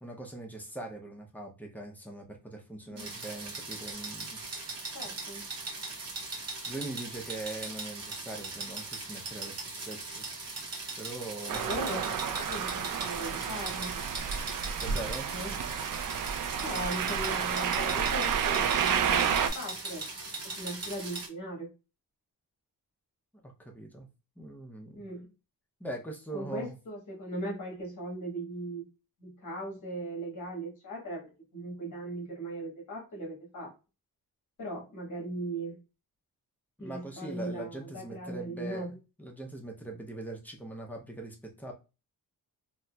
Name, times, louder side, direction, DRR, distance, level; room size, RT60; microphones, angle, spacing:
voice 1, 0.0-4.4 6.6-10.2 11.0-12.1 14.8-15.3 23.4-24.1 24.4-25.1 25.8-26.7 36.8-38.9 39.2-41.7, right 2 dB, 5° left, 1 dB, 0.5 m, -41 dB
sound 1, 3.0-21.3, right 3 dB, 45° right, 0.8 m, -39 dB
voice 2, 4.9-5.4 11.5-14.0 15.3-15.6 16.6-20.0 20.4-21.7 24.9-25.3 26.3-28.8 29.2-33.7 34.6-35.8 36.8-39.0, right 1 dB, 55° left, -1 dB, 1.5 m, -39 dB
sound 2, 11.5-19.5, right 8 dB, 65° right, 0.5 m, -30 dB
4.1 x 2.0 x 2.2 m, 0.30 s
wide cardioid pair, 140°, 36 cm